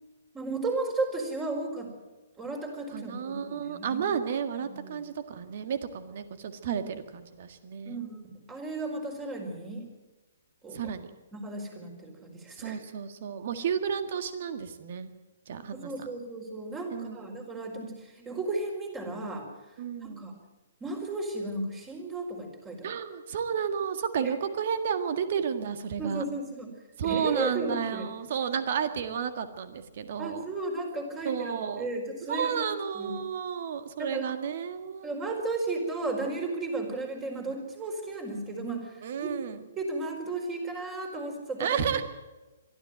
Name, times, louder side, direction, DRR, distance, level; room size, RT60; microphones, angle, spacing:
voice 1, 0.3-1.9 2.4-4.0 4.6-5.0 6.6-6.9 7.9-9.9 10.6-10.8 11.3-12.8 15.7-20.3 20.8-22.9 24.2-24.3 26.0-26.7 27.0-28.1 30.2-32.7 32.9-33.2 34.0-34.2 35.0-39.3 39.8-42.0, right 2 dB, 15° right, 3 dB, 4.5 m, -34 dB
voice 2, 2.9-8.0 10.7-11.1 12.6-15.1 15.5-16.1 16.9-17.5 19.8-20.4 22.8-26.2 27.0-30.4 31.2-31.9 32.3-35.1 39.0-39.6 41.6-42.0, right 7 dB, 45° right, 10 dB, 1.7 m, -32 dB
22.5 x 13.5 x 9.0 m, 1.2 s
figure-of-eight pair, 125°, 0 cm